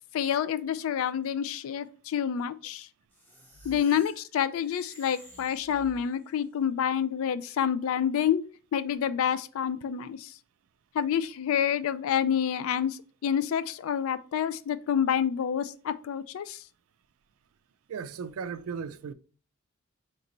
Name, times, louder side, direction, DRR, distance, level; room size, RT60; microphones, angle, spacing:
voice 1, 0.1-2.9 3.6-8.4 8.7-10.3 10.9-16.6, left 8 dB, 70° left, 0.3 m, -28 dB
sound 1, 3.1-6.4, equal, 10° left, 1.0 m, -52 dB
voice 2, 17.9-19.1, right 6 dB, 75° right, 0.3 m, -36 dB
3.9 x 3.2 x 3.0 m
head